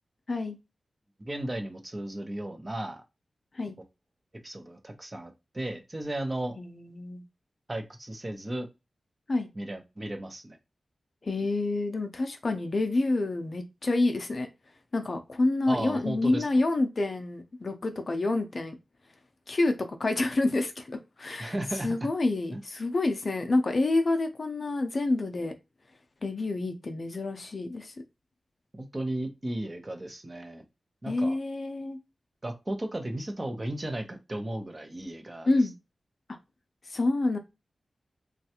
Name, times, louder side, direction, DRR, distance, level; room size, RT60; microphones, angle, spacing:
voice 1, 1.2-3.0 4.4-6.6 7.7-8.7 9.5-10.6 15.7-16.5 21.4-21.9 22.5-22.6 28.9-30.6 31.0-31.4 32.4-35.5, right 1 dB, 30° right, 0.7 m, -35 dB
voice 2, 6.6-7.2 9.3-9.5 11.2-14.5 14.9-18.7 19.5-21.6 21.8-25.5 26.2-27.9 31.1-32.0 35.5-35.8 36.9-37.4, left 2 dB, 55° left, 0.5 m, -28 dB
3.2 x 2.4 x 2.8 m
cardioid pair, 65°, 0 cm